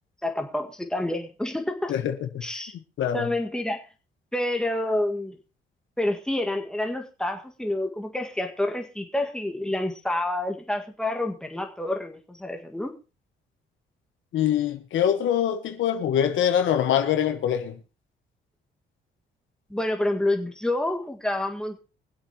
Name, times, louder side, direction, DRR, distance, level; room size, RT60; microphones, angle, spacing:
voice 1, 0.2-1.9 2.4-2.7 3.1-3.8 4.3-5.4 6.0-12.9 19.7-21.8, left 1 dB, 5° left, 1.9 m, -28 dB
voice 2, 1.9-2.6 3.0-3.3 14.3-17.8, left 9 dB, 75° left, 1.4 m, -24 dB
24.0 x 8.0 x 3.0 m
cardioid pair, 90°, 20 cm